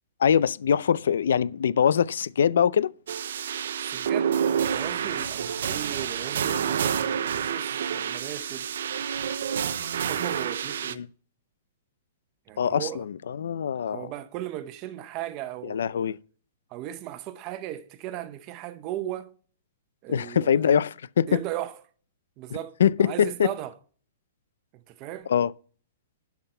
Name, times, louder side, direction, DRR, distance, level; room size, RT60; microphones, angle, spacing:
voice 1, 0.2-2.9 10.9-11.1 12.6-14.1 15.6-16.2 20.1-21.3 22.8-23.5 25.3-25.5, left 8 dB, 80° left, 0.5 m, -23 dB
sound 1, 3.1-10.9, right 8 dB, 70° right, 0.7 m, -28 dB
voice 2, 3.9-8.7 10.1-11.0 12.5-13.0 13.9-16.1 16.7-19.3 20.0-20.8 21.3-21.7 22.4-23.7 24.7-25.3, right 12 dB, 25° right, 0.8 m, -37 dB
12.0 x 5.9 x 5.5 m
hypercardioid pair, 170°, 0 cm